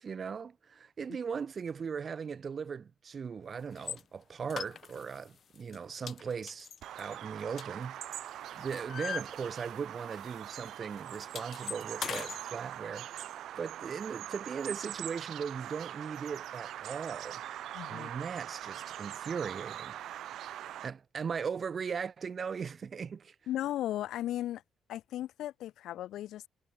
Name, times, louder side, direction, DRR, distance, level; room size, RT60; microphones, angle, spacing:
voice 1, 0.0-6.7 6.9-8.2 8.6-17.4 17.9-20.0 20.8-23.3, right 6 dB, 45° right, 1.0 m, -38 dB
sound 1, 3.8-4.0 4.5-5.2 5.6-5.8 6.1-8.1 8.4-9.9 10.2-10.4 10.7-12.4, left 7 dB, 55° left, 2.5 m, -41 dB
Bird vocalization bird call bird song, 6.8-20.9, right 12 dB, 75° right, 4.4 m, -42 dB
voice 2, 17.7-18.1 23.5-24.6 24.9-26.5, left 13 dB, 80° left, 0.8 m, -36 dB
cardioid pair, 90°, 0 cm